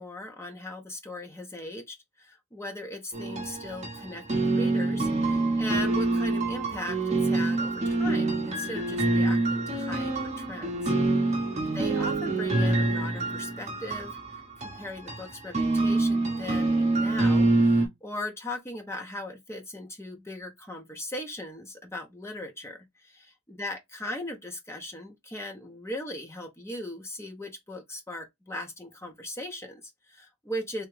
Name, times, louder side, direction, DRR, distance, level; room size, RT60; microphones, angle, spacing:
voice 1, 0.0-10.9 11.7-23.1 23.5-30.9, left 1 dB, 10° left, 0.6 m, -39 dB
sound 1, 3.1-17.9, right 2 dB, 30° right, 0.8 m, -26 dB
3.4 x 2.8 x 3.1 m
head